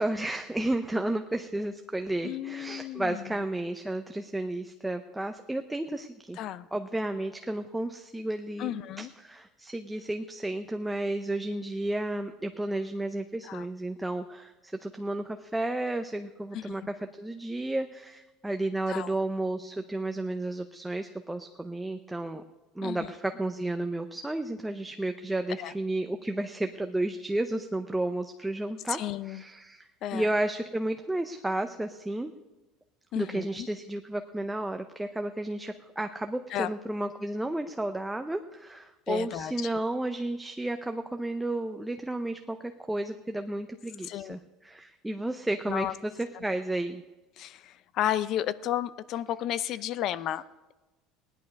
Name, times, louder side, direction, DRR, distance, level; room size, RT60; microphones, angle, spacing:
voice 1, 0.0-6.4 6.7-22.4 22.8-29.0 29.3-32.3 33.2-47.0, right 1 dB, 5° right, 6 dB, 0.6 m, -32 dB
voice 2, 2.2-3.3 6.4-6.7 8.6-9.1 13.4-13.7 16.5-16.9 18.9-19.1 22.8-23.1 25.6-25.7 28.9-29.4 30.0-30.3 33.1-33.7 36.5-36.7 39.1-39.7 44.0-44.4 45.7-45.9 46.3-46.4 47.4-50.4, left 12 dB, 50° left, 16 dB, 0.6 m, -33 dB
17.0 x 11.0 x 5.3 m, 1.1 s
cardioid pair, 145°, 0 cm